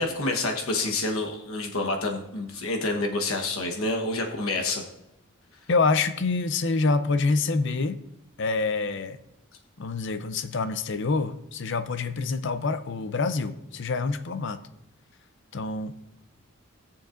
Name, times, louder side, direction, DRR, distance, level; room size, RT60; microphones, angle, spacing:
voice 1, 0.0-4.8, left 2 dB, 75° left, 1.2 m, -28 dB
voice 2, 5.7-8.0 8.4-9.2 9.8-14.6 15.5-15.9, left 3 dB, 55° left, 0.6 m, -26 dB
18.0 x 7.1 x 2.5 m
head